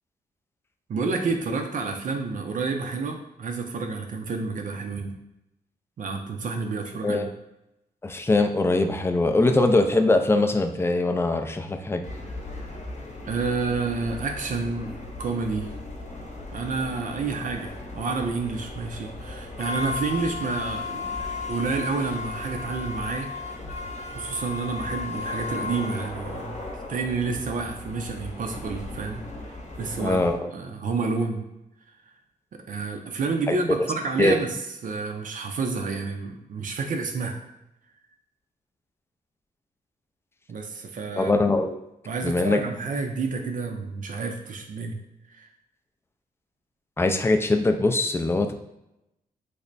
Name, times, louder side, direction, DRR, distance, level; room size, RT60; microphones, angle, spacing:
voice 1, 0.9-5.1 6.0-7.3 13.2-15.7 16.5-21.1 21.5-23.3 23.7-23.9 24.1-26.6 26.9-29.5 29.8-30.3 30.5-31.5 32.7-34.5 34.8-37.4 40.5-41.3 42.1-45.0 45.3-45.5, right 4 dB, 60° right, 3 dB, 0.5 m, -29 dB
voice 2, 8.0-12.1 30.0-30.4 33.5-33.9 34.2-34.4 41.2-41.8 42.2-42.6 47.0-48.5, left 2 dB, 15° left, 5 dB, 0.4 m, -22 dB
sound 1, 12.0-30.3, left 3 dB, 45° left, 0.8 m, -36 dB
3.3 x 2.1 x 3.9 m, 0.88 s
cardioid pair, 85°, 16 cm